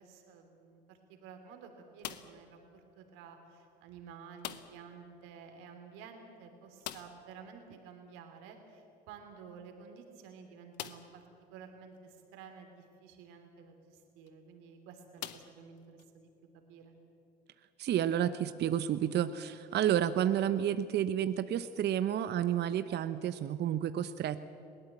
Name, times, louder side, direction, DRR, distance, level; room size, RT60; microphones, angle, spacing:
voice 1, 0.0-11.2 11.5-16.3 16.5-16.9, right 6 dB, 75° right, 5 dB, 3.1 m, -52 dB
sound 1, 2.0-2.5 4.4-4.9 5.2-5.3 5.6-5.7 6.8-7.4 9.1-9.2 9.8-9.9 10.7-11.2 12.0-12.1 14.1-14.3 15.2-16.1, left 13 dB, 90° left, 0.8 m, -44 dB
voice 2, 17.8-24.5, right 10 dB, 55° right, 12 dB, 0.9 m, -30 dB
21.5 x 18.0 x 8.4 m, 2.6 s
hypercardioid pair, 60°, 21 cm